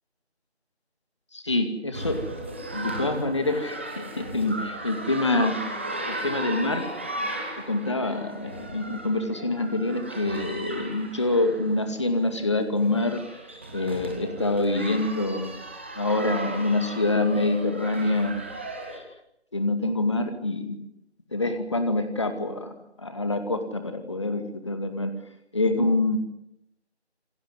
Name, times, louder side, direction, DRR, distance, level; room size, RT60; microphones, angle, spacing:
voice 1, 1.3-2.2 2.7-6.9 7.6-15.6 16.0-18.4 18.9-19.0 19.5-20.8 21.3-22.7 23.0-25.1 25.5-26.2, left 2 dB, 25° left, 8 dB, 2.3 m, -26 dB
sound 1, 1.9-19.0, right 1 dB, 10° right, 1.8 m, -36 dB
28.0 x 17.5 x 9.8 m, 0.80 s
figure-of-eight pair, 165°, 33 cm